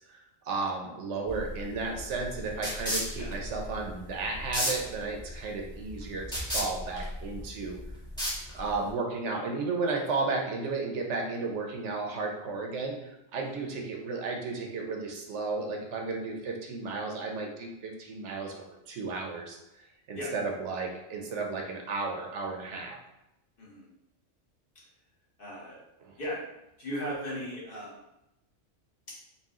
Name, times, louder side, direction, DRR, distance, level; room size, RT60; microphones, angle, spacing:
voice 1, 0.1-7.8 8.5-19.6 20.1-23.0 26.0-26.1, right 3 dB, 75° right, 1 dB, 1.0 m, -34 dB
sound 1, 1.3-8.9, equal, 5° left, 1.1 m, -35 dB
voice 2, 25.4-25.8 26.2-26.4 26.8-28.0, equal, 50° left, -6 dB, 1.3 m, -36 dB
4.2 x 2.3 x 3.6 m, 0.90 s
omnidirectional pair, 1.3 m